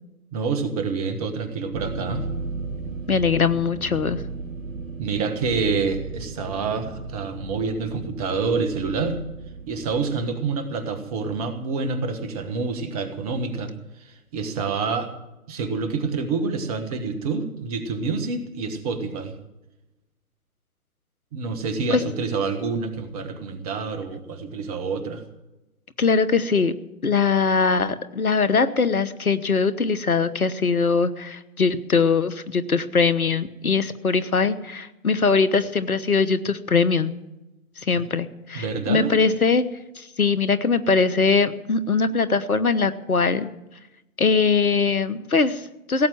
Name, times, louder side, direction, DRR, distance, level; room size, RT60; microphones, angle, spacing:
voice 1, 0.3-2.3 5.0-9.2 9.7-13.7 14.0-15.1 15.5-19.3 21.3-25.2 38.5-39.1, right 4 dB, 25° right, 8 dB, 1.6 m, -27 dB
sound 1, 1.7-10.3, right 3 dB, 60° right, 1.7 m, -35 dB
voice 2, 3.1-4.2 21.9-22.0 26.0-26.7 27.0-37.1 37.8-39.6 40.0-43.5 44.2-46.1, left 4 dB, 70° left, 14 dB, 1.2 m, -21 dB
17.0 x 8.3 x 9.1 m, 0.99 s
figure-of-eight pair, 130°, 44 cm